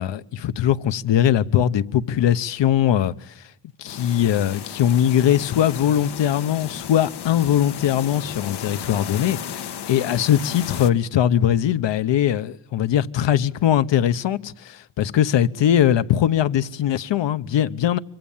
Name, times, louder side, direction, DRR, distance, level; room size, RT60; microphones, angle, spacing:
voice 1, 0.0-3.4 3.8-18.0, left 10 dB, 80° left, 1.2 m, -21 dB
sound 1, 3.9-10.9, left 8 dB, 65° left, 1.7 m, -34 dB
25.5 x 25.0 x 7.4 m
wide cardioid pair, 155°, 43 cm